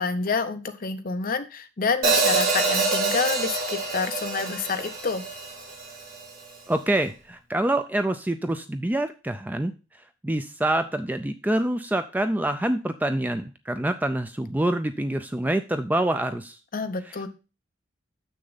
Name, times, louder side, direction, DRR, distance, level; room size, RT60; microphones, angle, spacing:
voice 1, 0.0-5.2 16.7-17.3, left 4 dB, 45° left, 8 dB, 0.7 m, -28 dB
Hi-hat, 2.0-6.2, right 3 dB, 45° right, 1.8 m, -26 dB
voice 2, 6.7-9.7 10.2-16.6, right 1 dB, 10° right, 8 dB, 0.3 m, -26 dB
7.0 x 6.4 x 3.9 m, 0.32 s
head